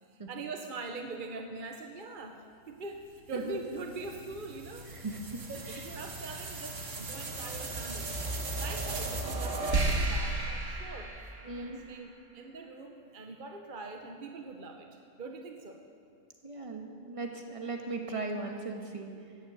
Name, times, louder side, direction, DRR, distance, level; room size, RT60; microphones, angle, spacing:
voice 1, 0.0-4.9 5.5-8.2 8.6-14.9 15.2-15.8, right 3 dB, 40° right, 4 dB, 1.0 m, -43 dB
sound 1, 3.3-11.9, right 2 dB, 65° right, 1.8 m, -35 dB
voice 2, 4.9-5.4 5.7-5.9 11.5-11.8 16.4-19.4, right 3 dB, 25° right, 3 dB, 1.4 m, -38 dB
14.5 x 10.5 x 8.0 m, 2.3 s
omnidirectional pair, 1.4 m